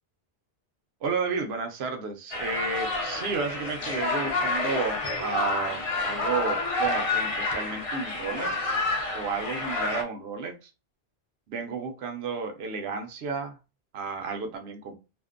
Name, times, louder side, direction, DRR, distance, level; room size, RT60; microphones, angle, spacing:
voice 1, 1.0-8.8 9.1-10.7 11.5-13.6 13.9-15.0, right 5 dB, 75° right, 5 dB, 0.8 m, -32 dB
sound 1, 2.3-10.0, left 3 dB, 50° left, 0.4 m, -29 dB
2.5 x 2.1 x 2.4 m, 0.29 s
omnidirectional pair, 1.1 m